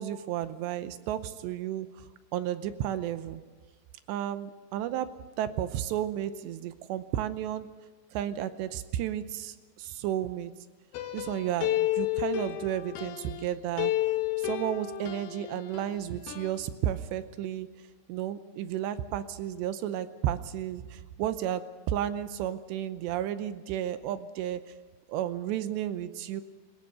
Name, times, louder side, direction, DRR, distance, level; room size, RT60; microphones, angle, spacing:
voice 1, 0.0-2.1 2.3-3.4 4.1-5.1 5.4-7.7 8.1-10.5 11.1-13.9 14.4-17.7 18.1-21.6 21.9-24.6 25.1-26.4, right 11 dB, 80° right, 11 dB, 2.7 m, -32 dB
sound 1, 10.9-13.5 13.8-15.9 16.3-16.6, left 15 dB, 70° left, 2.6 m, -31 dB
20.5 x 19.5 x 6.8 m, 1.4 s
omnidirectional pair, 5.6 m